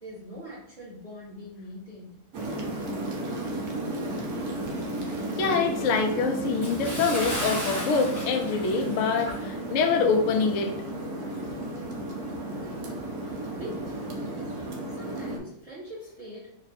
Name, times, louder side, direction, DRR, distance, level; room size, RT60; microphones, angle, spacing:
voice 1, 0.0-2.2 3.5-3.8 12.5-12.9 13.4-14.6 14.9-16.5, equal, 25° right, -7 dB, 1.0 m, -43 dB
sound 1, 2.3-15.4, right 1 dB, 70° right, 1.1 m, -33 dB
voice 2, 5.4-10.7, left 5 dB, 65° left, 4 dB, 0.8 m, -25 dB
Bathtub (filling or washing) / Splash splatter, 6.6-9.5 9.8-10.0 10.5-10.6, equal, 15° left, 0.8 m, -35 dB
3.5 x 2.2 x 4.1 m, 0.70 s
omnidirectional pair, 1.8 m